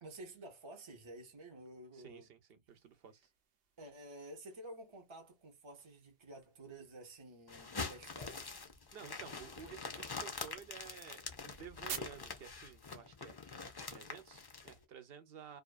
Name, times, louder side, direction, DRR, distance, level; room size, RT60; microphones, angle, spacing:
voice 1, 0.0-2.3 3.8-8.6, right 1 dB, 35° right, 0.6 m, -52 dB
voice 2, 1.9-3.3 8.9-13.4 13.9-15.6, right 8 dB, 65° right, 0.8 m, -53 dB
sound 1, 2.7-14.5, right 7 dB, 90° right, 1.0 m, -55 dB
sound 2, 7.5-14.7, left 4 dB, 40° left, 0.3 m, -45 dB
2.6 x 2.4 x 2.2 m
omnidirectional pair, 1.1 m